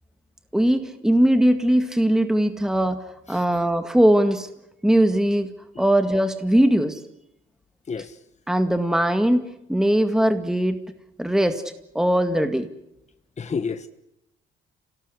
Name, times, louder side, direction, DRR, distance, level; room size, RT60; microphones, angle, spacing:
voice 1, 0.5-3.0 3.3-4.5 4.8-5.5 5.8-7.0 8.5-9.4 9.7-10.8 11.2-11.6 11.9-12.7, right 1 dB, 5° right, 2.0 m, -20 dB
voice 2, 13.4-13.9, left 5 dB, 35° left, 1.4 m, -30 dB
28.0 x 18.0 x 9.9 m
cardioid pair, 90°, 20 cm